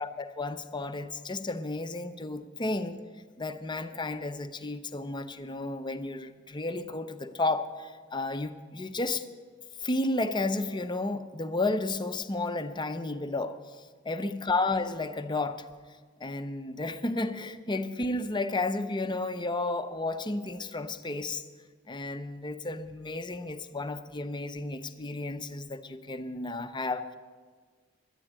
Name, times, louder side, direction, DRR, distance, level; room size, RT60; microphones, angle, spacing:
voice 1, 0.0-3.0 3.4-9.2 9.8-13.6 14.1-15.6 16.2-21.4 21.9-27.2, left 2 dB, 25° left, 10 dB, 0.6 m, -32 dB
11.0 x 8.7 x 9.4 m, 1.5 s
head